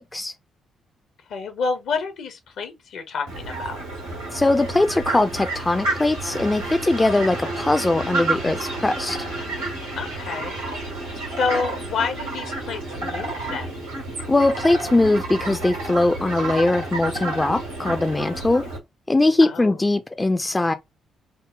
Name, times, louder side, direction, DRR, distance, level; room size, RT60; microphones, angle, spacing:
voice 1, 1.3-3.8 10.0-10.8 11.4-13.9 19.4-19.8, left 5 dB, 60° left, 0.7 m, -29 dB
Fowl, 3.3-18.8, right 2 dB, 85° right, 1.4 m, -30 dB
voice 2, 4.3-9.2 14.3-18.6 19.1-20.7, left 2 dB, 20° left, 0.4 m, -21 dB
3.7 x 2.0 x 3.6 m
figure-of-eight pair, 40°, 0 cm